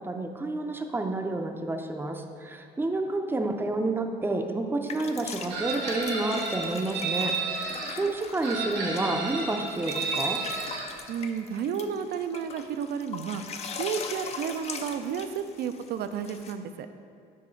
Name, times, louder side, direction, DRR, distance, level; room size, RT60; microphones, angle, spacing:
voice 1, 0.0-10.4, right 2 dB, 15° right, 5 dB, 0.5 m, -30 dB
sound 1, 4.9-16.5, left 5 dB, 40° left, 0.5 m, -41 dB
Chicken rooster, 5.5-7.9 8.4-10.9, right 4 dB, 85° right, 1.1 m, -32 dB
voice 2, 11.1-13.4 13.7-16.9, right 7 dB, 65° right, 10 dB, 0.4 m, -32 dB
6.2 x 4.8 x 4.4 m, 2.4 s
cardioid pair, 110°, 17 cm